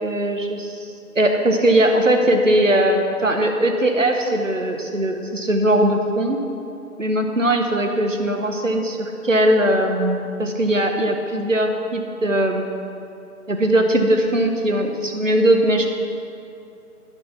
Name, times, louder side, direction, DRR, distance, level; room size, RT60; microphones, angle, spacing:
voice 1, 0.0-6.4 7.0-12.9 13.5-15.9, right 1 dB, 55° right, 3 dB, 1.1 m, -20 dB
11.0 x 6.0 x 5.9 m, 2.6 s
figure-of-eight pair, 180°, 46 cm